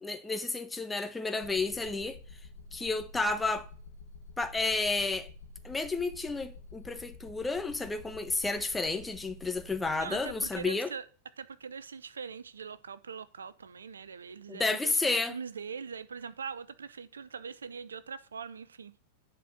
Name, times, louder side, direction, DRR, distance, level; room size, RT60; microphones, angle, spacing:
voice 1, 0.0-2.2 2.7-3.7 4.4-5.3 5.6-10.9 14.5-15.4, left 3 dB, 10° left, 1.0 m, -31 dB
sound 1, 1.4-10.7, left 3 dB, 60° left, 1.9 m, -49 dB
voice 2, 9.9-11.0 11.4-15.0 15.3-18.9, right 6 dB, 70° right, 0.5 m, -42 dB
11.0 x 4.5 x 6.5 m
figure-of-eight pair, 90°, 0 cm